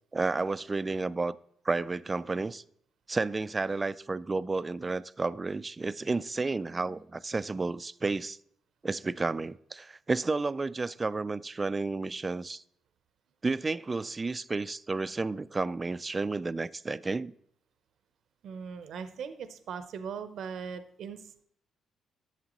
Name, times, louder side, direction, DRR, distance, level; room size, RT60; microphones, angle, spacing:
voice 1, 0.1-1.4 1.6-2.6 3.1-8.4 8.8-12.6 13.4-17.3, right 3 dB, 25° right, 0.3 m, -31 dB
voice 2, 18.4-21.4, right 6 dB, 70° right, 0.6 m, -40 dB
11.5 x 7.3 x 3.0 m
cardioid pair, 90°, 0 cm